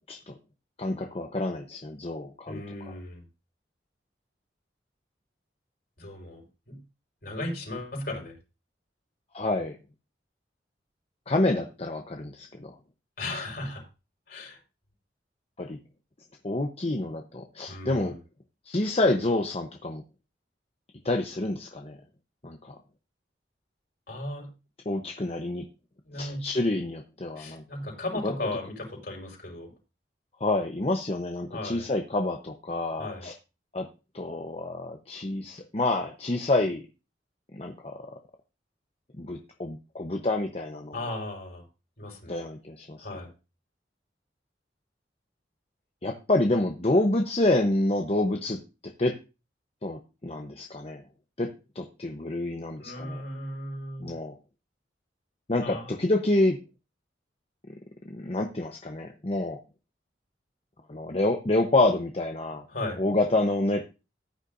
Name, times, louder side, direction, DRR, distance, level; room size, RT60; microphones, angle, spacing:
voice 1, 0.8-2.6 9.3-9.8 11.3-12.7 15.6-15.8 16.4-18.1 18.7-20.0 21.0-22.0 22.4-22.8 24.9-25.6 26.2-27.6 28.2-28.3 30.4-33.3 33.7-33.9 34.1-36.8 37.5-38.1 39.2-40.9 42.3-43.0 46.0-49.2 49.8-51.0 51.4-53.2 54.0-54.4 55.5-56.6 58.1-59.6 60.9-62.6 63.0-63.8, left 2 dB, 35° left, 4 dB, 0.9 m, -28 dB
voice 2, 2.5-3.2 6.0-6.8 7.2-8.4 13.2-13.8 14.3-14.6 17.7-18.1 24.1-24.5 26.1-26.5 27.4-29.7 31.5-31.9 33.0-33.3 40.9-41.6 42.0-42.4 43.0-43.3 52.8-54.2 55.6-55.9 62.7-63.0, left 1 dB, 60° left, 0 dB, 5.2 m, -36 dB
14.5 x 9.8 x 2.6 m, 0.30 s
head